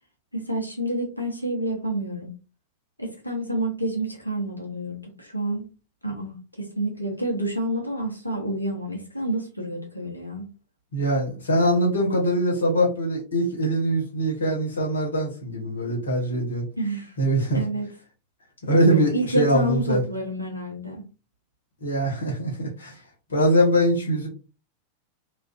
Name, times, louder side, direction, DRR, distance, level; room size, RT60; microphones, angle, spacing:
voice 1, 0.3-2.3 3.0-5.7 6.0-10.5 16.8-17.1 17.5-17.9 18.9-21.0, right 1 dB, 85° left, 0.8 m, -29 dB
voice 2, 10.9-16.6 17.2-17.6 18.6-20.0 21.8-22.9 23.3-24.3, equal, 70° left, 1.1 m, -22 dB
2.4 x 2.3 x 2.3 m
figure-of-eight pair, 90°, 0 cm